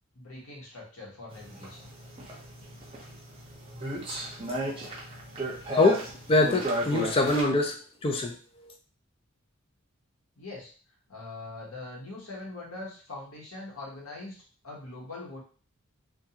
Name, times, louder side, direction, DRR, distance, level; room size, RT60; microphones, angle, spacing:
voice 1, 0.1-1.9 10.4-10.7 11.1-15.4, left 2 dB, 75° left, -3 dB, 1.1 m, -42 dB
sound 1, 1.3-7.4, right 1 dB, 25° right, 0.6 m, -35 dB
voice 2, 5.7-8.4, left 2 dB, 25° left, 4 dB, 0.3 m, -24 dB
2.5 x 2.3 x 2.7 m, 0.37 s
head